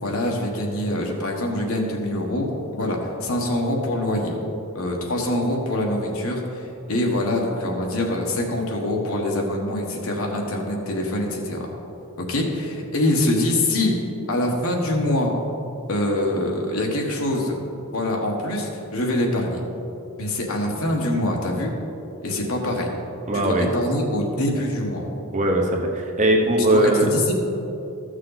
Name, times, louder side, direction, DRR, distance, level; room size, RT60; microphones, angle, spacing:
voice 1, 0.0-2.5 2.7-4.4 4.7-6.6 6.9-11.7 12.2-14.0 14.3-15.3 15.9-17.6 17.9-19.6 20.2-21.7 22.2-22.9 23.3-25.0 26.6-27.3, left 1 dB, 70° left, 0 dB, 1.4 m, -24 dB
voice 2, 23.3-23.7 25.3-27.1, right 1 dB, 35° right, 2 dB, 1.0 m, -20 dB
13.5 x 6.5 x 4.0 m, 2.8 s
head